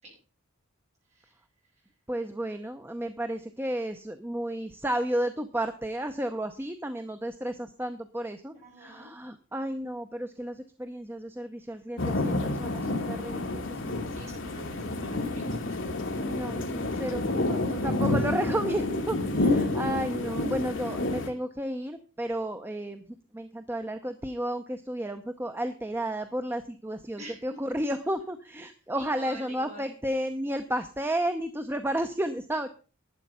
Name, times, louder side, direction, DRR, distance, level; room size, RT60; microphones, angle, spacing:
voice 1, 2.1-13.8 16.0-23.0 23.3-32.7, right 1 dB, 10° right, 8 dB, 0.7 m, -32 dB
voice 2, 8.6-9.1 14.1-15.5 15.8-15.9 27.2-27.4 27.7-27.8 28.9-29.9, right 1 dB, 30° right, -2 dB, 8.0 m, -46 dB
sound 1, 12.0-21.3, left 2 dB, 60° left, 2.2 m, -29 dB
12.0 x 9.1 x 5.6 m, 0.37 s
head